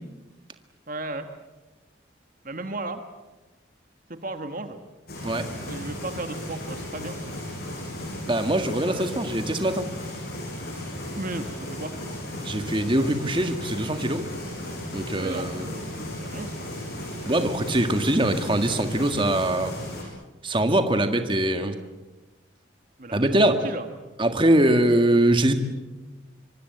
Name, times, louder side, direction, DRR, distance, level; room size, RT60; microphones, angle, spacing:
voice 1, 0.9-1.3 2.4-3.0 4.1-4.8 5.7-7.2 8.9-9.1 11.1-11.9 15.2-16.7 23.0-23.3 23.6-23.9, right 2 dB, 45° right, 7 dB, 1.5 m, -35 dB
sound 1, 5.1-20.0, left 1 dB, 55° left, 7.9 m, -35 dB
voice 2, 8.2-9.9 12.4-14.3 14.9-15.7 17.3-19.7 20.4-21.8 23.1-23.6 24.2-25.5, right 1 dB, 25° right, 7 dB, 1.7 m, -22 dB
25.0 x 24.5 x 8.0 m, 1.1 s
head